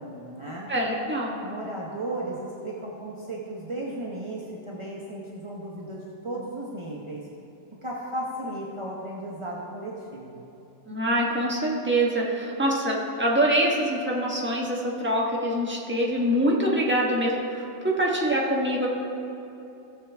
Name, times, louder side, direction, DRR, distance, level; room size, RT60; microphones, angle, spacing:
voice 1, 0.0-0.7 1.4-7.2 7.8-10.5, right 1 dB, 30° right, -4 dB, 0.5 m, -35 dB
voice 2, 0.7-1.4 10.9-18.9, right 1 dB, 10° right, -3 dB, 1.0 m, -25 dB
16.0 x 7.5 x 3.4 m, 2.9 s
omnidirectional pair, 1.9 m